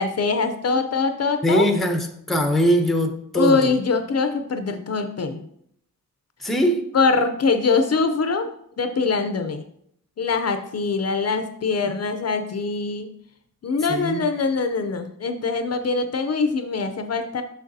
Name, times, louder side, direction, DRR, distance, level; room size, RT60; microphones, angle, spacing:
voice 1, 0.0-1.7 3.3-5.4 6.9-8.5 8.8-9.6 10.2-13.1 13.6-17.4, left 4 dB, 45° left, 0.5 m, -23 dB
voice 2, 1.4-3.7 6.4-6.8 13.9-14.2, equal, ahead, 0.6 m, -21 dB
6.5 x 6.4 x 2.7 m
wide cardioid pair, 145°, 34 cm